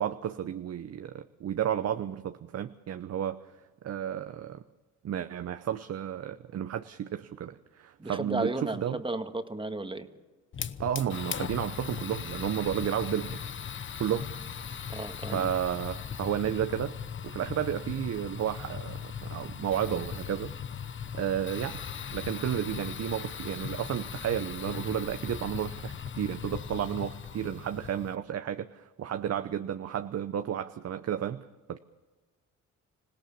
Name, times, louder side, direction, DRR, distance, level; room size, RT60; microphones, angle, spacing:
voice 1, 0.0-3.4 3.8-4.6 5.0-9.0 10.8-13.4 14.0-14.3 15.3-17.0 17.2-20.5 21.1-21.8 22.1-31.8, right 10 dB, 55° right, 10 dB, 0.9 m, -32 dB
voice 2, 8.0-10.1 14.9-15.5, right 2 dB, 15° right, 8 dB, 1.7 m, -33 dB
Fire, 10.5-28.1, left 7 dB, 40° left, 1.0 m, -38 dB
26.0 x 17.0 x 7.0 m, 1.2 s
cardioid pair, 90°, 30 cm